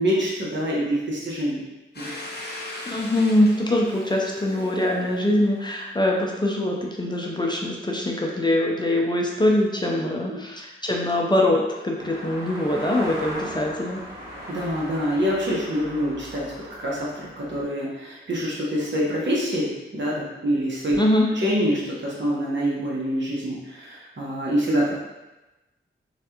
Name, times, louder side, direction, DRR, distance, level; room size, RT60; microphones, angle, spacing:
voice 1, 0.0-1.6 2.0-2.1 14.5-16.5 16.8-21.0 21.3-25.0, equal, 60° right, -5 dB, 1.0 m, -25 dB
Domestic sounds home sounds, 1.9-6.6, left 1 dB, 50° left, 0.8 m, -39 dB
voice 2, 2.9-14.0 21.0-21.2, left 1 dB, 20° left, -1 dB, 0.5 m, -23 dB
sound 1, 12.0-17.6, equal, 20° right, 1.3 m, -38 dB
3.1 x 2.4 x 2.8 m, 1.0 s
cardioid pair, 55°, 21 cm